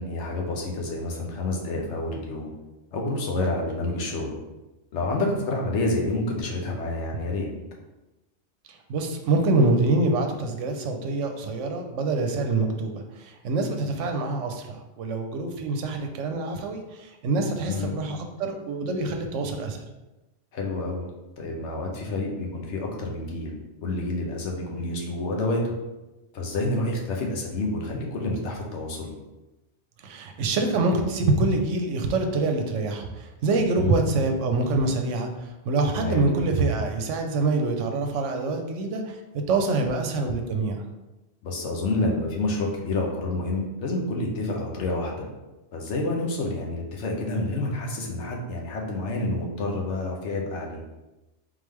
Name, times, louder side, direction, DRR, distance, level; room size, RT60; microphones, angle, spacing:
voice 1, 0.0-2.5 2.9-4.3 4.9-7.5 17.7-17.9 20.5-21.1 21.4-25.7 26.3-29.2 33.8-33.9 35.9-36.3 41.4-45.3 45.7-50.8, left 2 dB, 70° left, 0 dB, 1.1 m, -28 dB
voice 2, 8.9-19.8 30.0-39.2 39.5-40.8, right 3 dB, 80° right, 4 dB, 0.9 m, -25 dB
3.7 x 3.2 x 3.5 m, 1.0 s
omnidirectional pair, 1.3 m